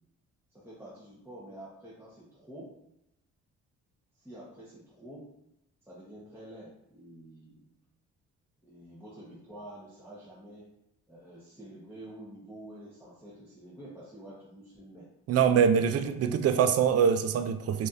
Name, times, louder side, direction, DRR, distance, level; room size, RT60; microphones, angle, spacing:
voice 1, 0.5-2.8 4.1-5.3 5.8-7.7 8.6-10.7 11.1-15.1 15.7-16.2, right 1 dB, 10° right, -7 dB, 1.0 m, -48 dB
voice 2, 15.3-17.9, right 7 dB, 55° right, 9 dB, 0.4 m, -24 dB
4.9 x 2.7 x 2.5 m, 0.83 s
cardioid pair, 90°, 30 cm